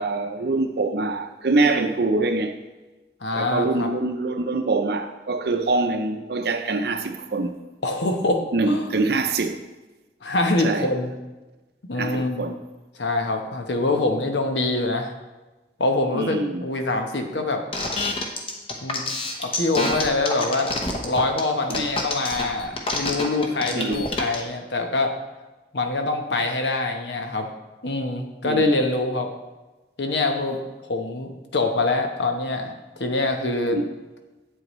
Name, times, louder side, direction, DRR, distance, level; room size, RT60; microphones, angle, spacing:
voice 1, 0.0-2.6 3.3-7.5 8.5-9.6 10.6-10.9 12.0-12.6 16.1-16.7 21.7-21.9 23.7-24.0 28.4-28.7 33.7-33.9, right 2 dB, 60° right, 0.6 m, -24 dB
voice 2, 3.2-3.9 7.8-8.9 10.2-11.2 11.8-12.4 13.0-15.1 15.8-17.6 18.8-19.0 19.4-20.7 21.0-25.1 25.7-27.5 27.8-29.3 30.0-30.6 30.8-33.8, left 2 dB, 80° left, 1.0 m, -24 dB
sound 1, 17.7-24.4, left 2 dB, 30° left, 0.9 m, -27 dB
8.2 x 7.9 x 3.1 m
head